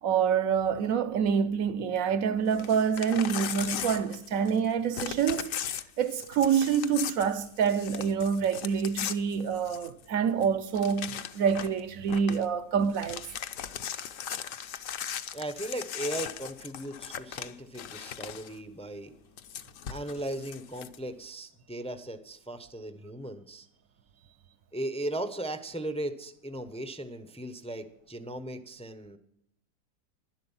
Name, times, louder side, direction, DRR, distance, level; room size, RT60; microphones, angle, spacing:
voice 1, 0.0-5.5 6.0-13.3, right 7 dB, 65° right, 1.0 m, -27 dB
Crumpling crinkling / Tearing, 2.5-4.7 4.9-10.0 10.4-10.5 10.7-11.8 12.1-12.4 12.8-18.6 19.4-21.0, left 9 dB, 65° left, 1.0 m, -38 dB
voice 2, 15.3-19.1 19.9-23.7 24.7-29.2, right 1 dB, 5° left, 0.4 m, -37 dB
11.5 x 11.0 x 5.5 m
omnidirectional pair, 1.7 m